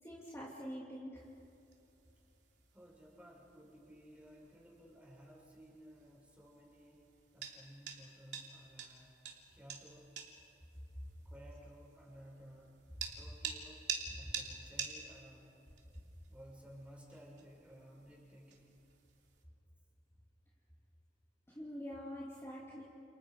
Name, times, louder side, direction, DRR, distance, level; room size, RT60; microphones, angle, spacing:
voice 1, 0.0-1.3 13.0-13.1 21.5-22.8, equal, 15° left, -5 dB, 2.8 m, -45 dB
sound 1, 1.2-19.4, right 6 dB, 90° right, 3.1 m, -49 dB
voice 2, 2.7-7.0 7.3-9.2 9.5-10.1 11.2-12.8 13.2-13.9 14.2-15.6 16.3-18.8, equal, 5° right, -3 dB, 6.2 m, -57 dB
30.0 x 29.5 x 5.1 m, 2.8 s
head